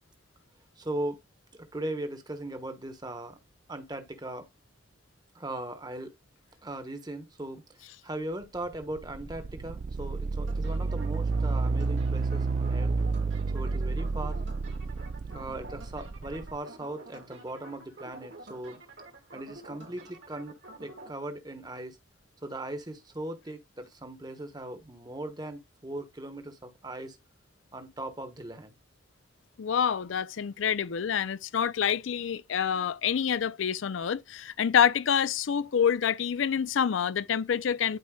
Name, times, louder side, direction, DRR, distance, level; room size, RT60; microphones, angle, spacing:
voice 1, 0.8-1.2 1.5-3.4 3.7-4.5 5.3-6.1 6.6-7.6 8.0-12.9 13.5-14.4 15.3-18.8 19.3-22.0 22.4-27.2 27.7-28.7, right 1 dB, 20° right, 1.1 m, -38 dB
sound 1, 8.5-16.6, right 3 dB, 40° right, 0.3 m, -30 dB
sound 2, 10.5-21.1, right 2 dB, 70° right, 2.3 m, -49 dB
voice 2, 29.6-38.0, left 8 dB, 80° left, 0.4 m, -27 dB
11.5 x 4.4 x 2.3 m
head